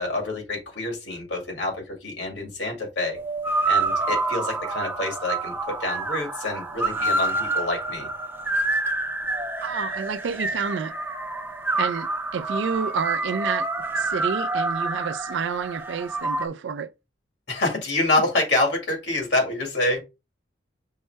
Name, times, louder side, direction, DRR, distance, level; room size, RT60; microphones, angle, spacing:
voice 1, 0.0-3.2 3.7-8.1 17.5-20.0, left 2 dB, 75° left, 2.0 m, -27 dB
sound 1, 3.1-16.5, right 2 dB, 10° right, 0.4 m, -27 dB
voice 2, 9.6-10.9 11.8-12.1 12.3-13.7 14.0-16.9, right 6 dB, 75° right, 0.4 m, -29 dB
5.5 x 2.1 x 4.4 m
head